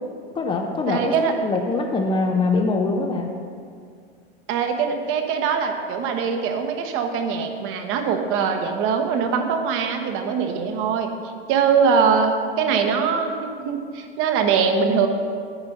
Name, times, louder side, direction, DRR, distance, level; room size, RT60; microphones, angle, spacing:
voice 1, 0.3-3.4, left 3 dB, 15° left, 2 dB, 0.4 m, -23 dB
voice 2, 0.9-1.3 4.5-11.1 11.5-15.1, right 6 dB, 40° right, 5 dB, 1.0 m, -22 dB
9.7 x 4.4 x 5.3 m, 2.2 s
hypercardioid pair, 105°, 32 cm